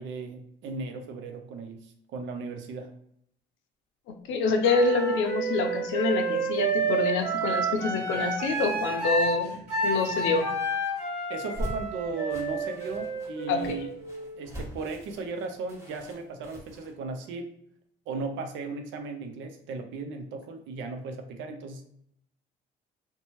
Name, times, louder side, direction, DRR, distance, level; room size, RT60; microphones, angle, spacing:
voice 1, 0.0-2.9 11.3-13.9 14.4-17.5 18.1-21.9, right 4 dB, 75° right, 5 dB, 0.5 m, -36 dB
voice 2, 4.1-10.6 13.5-13.8, left 3 dB, 75° left, 5 dB, 0.5 m, -27 dB
Wind instrument woodwind instrument, 4.6-14.4, right 3 dB, 60° right, 1.3 m, -30 dB
sound 1, 11.3-16.9, equal, 15° right, 1.1 m, -41 dB
2.7 x 2.2 x 2.9 m, 0.70 s
supercardioid pair, 65°, 20 cm